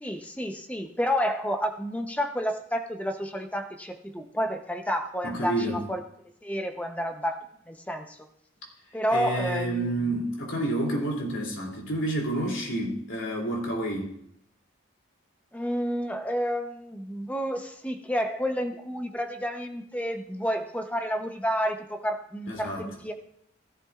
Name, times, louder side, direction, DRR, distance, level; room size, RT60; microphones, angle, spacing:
voice 1, 0.0-6.0 6.4-8.3 8.9-10.2 15.5-23.1, equal, 5° left, 6 dB, 0.7 m, -30 dB
voice 2, 5.2-5.8 9.1-14.1 22.5-22.9, right 1 dB, 70° left, 0 dB, 2.8 m, -29 dB
15.5 x 11.5 x 2.4 m, 0.70 s
head